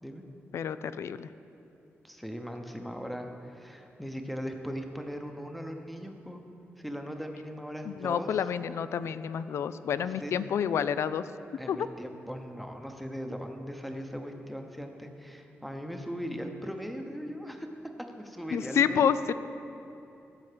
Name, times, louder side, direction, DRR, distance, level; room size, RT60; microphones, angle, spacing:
voice 1, 0.5-1.3 7.8-11.3 11.7-11.9 18.5-19.3, left 8 dB, 75° left, 14 dB, 0.4 m, -29 dB
voice 2, 2.0-6.4 6.8-8.4 9.9-10.4 11.6-17.7 18.2-19.1, equal, ahead, 4 dB, 0.9 m, -39 dB
15.0 x 7.0 x 5.1 m, 2.8 s
wide cardioid pair, 135°, 5 cm